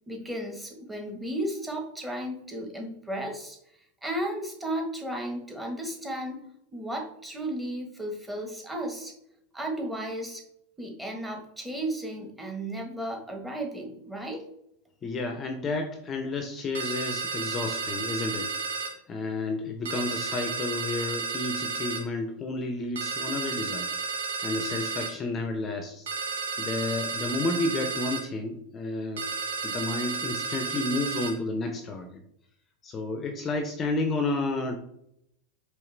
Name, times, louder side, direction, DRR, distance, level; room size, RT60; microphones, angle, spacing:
voice 1, 0.1-3.6 4.0-6.4 6.7-9.1 9.5-10.4 10.8-14.4, right 1 dB, 10° right, 1 dB, 1.3 m, -34 dB
voice 2, 15.0-23.9 24.4-26.1 26.6-29.2 29.6-32.2 32.8-34.8, left 2 dB, 30° left, 5 dB, 0.6 m, -31 dB
sound 1, 16.8-18.9 19.9-22.0 23.0-25.2 26.1-28.3 29.2-31.4, right 4 dB, 75° right, 0.9 m, -32 dB
4.7 x 3.2 x 3.2 m, 0.75 s
hypercardioid pair, 90°, 0 cm